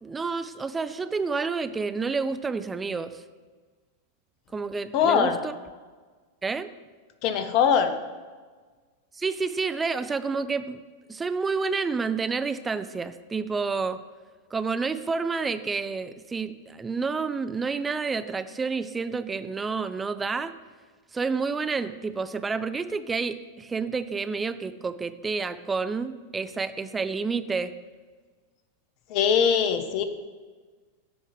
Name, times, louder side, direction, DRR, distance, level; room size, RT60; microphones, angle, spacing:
voice 1, 0.0-3.2 4.5-5.5 6.4-6.7 9.1-10.8 11.1-14.0 14.5-20.5 21.1-27.8, right 4 dB, 15° right, 12 dB, 0.4 m, -29 dB
voice 2, 4.9-5.4 7.2-8.0 29.1-30.0, left 7 dB, 45° left, 10 dB, 0.7 m, -22 dB
9.5 x 3.9 x 4.8 m, 1.4 s
figure-of-eight pair, 90°, 0 cm